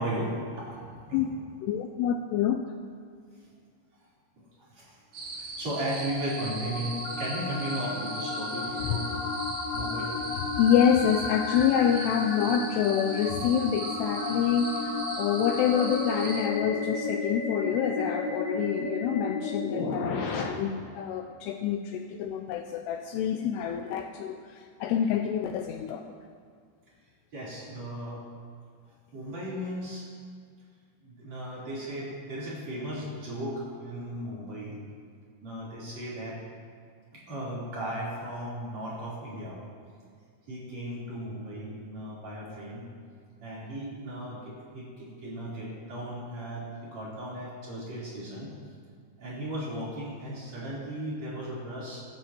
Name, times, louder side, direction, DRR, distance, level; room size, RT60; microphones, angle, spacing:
voice 1, 0.0-1.4 4.4-5.0 5.3-9.1 9.7-10.1 24.8-24.9 27.3-28.2 29.1-30.1 31.0-34.7 35.4-36.4 37.1-39.6 40.5-42.9 43.4-48.5 49.2-52.0, right 1 dB, 40° right, -8 dB, 4.6 m, -36 dB
voice 2, 1.6-2.7 10.6-24.4 24.8-26.0, left 8 dB, 85° left, 6 dB, 2.5 m, -27 dB
sound 1, 5.1-16.5, right 3 dB, 70° right, 3.6 m, -39 dB
sound 2, 5.3-20.4, left 3 dB, 65° left, 3.0 m, -33 dB
23.5 x 11.5 x 3.0 m, 2.1 s
omnidirectional pair, 5.0 m